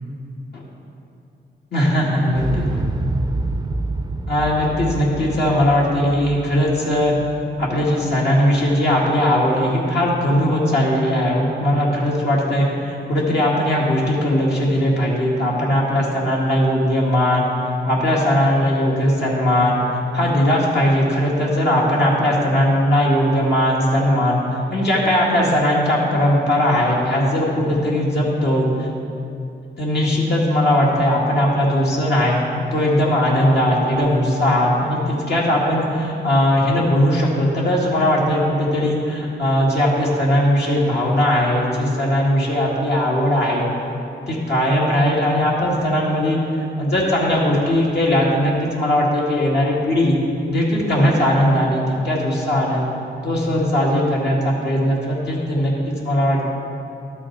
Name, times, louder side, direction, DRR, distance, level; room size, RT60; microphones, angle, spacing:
voice 1, 1.7-2.9 4.3-7.1 7.6-17.5 17.9-19.8 20.1-28.9 29.8-32.4 32.7-43.7 44.3-50.2 50.5-52.9 53.2-56.5, left 1 dB, 65° left, -5 dB, 2.0 m, -19 dB
Explosion, 2.3-8.4 8.7-8.8, right 2 dB, 20° right, 0.4 m, -28 dB
12.5 x 6.2 x 4.7 m, 2.8 s
cardioid pair, 85°, 19 cm